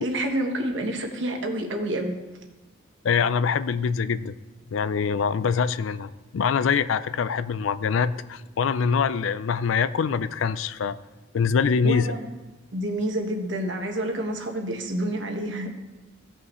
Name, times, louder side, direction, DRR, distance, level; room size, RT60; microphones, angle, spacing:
voice 1, 0.0-2.2 11.8-12.3 12.7-15.7, right 1 dB, 65° right, 3 dB, 1.3 m, -28 dB
voice 2, 3.0-4.3 4.7-11.0 11.3-12.1, left 6 dB, 80° left, 15 dB, 0.4 m, -24 dB
16.5 x 5.6 x 3.1 m, 1.2 s
head